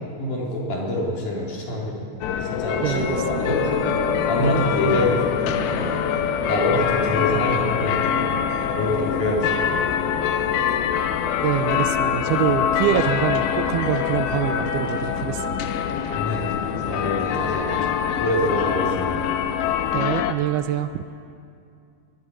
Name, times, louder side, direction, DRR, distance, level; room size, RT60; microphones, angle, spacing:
voice 1, 0.2-2.1 2.5-3.0 3.4-3.9 4.3-5.9 6.5-8.2 8.7-9.9 16.1-16.5 16.9-17.7 18.1-19.2, left 1 dB, 45° left, -3 dB, 4.4 m, -25 dB
sound 1, 2.2-20.3, left 9 dB, 80° left, 3.1 m, -24 dB
voice 2, 2.8-3.2 11.4-15.7 19.9-21.0, right 11 dB, 80° right, 11 dB, 2.3 m, -25 dB
sound 2, 3.0-19.9, right 1 dB, 65° right, 5.9 m, -35 dB
24.5 x 20.0 x 6.2 m, 2.5 s
omnidirectional pair, 5.1 m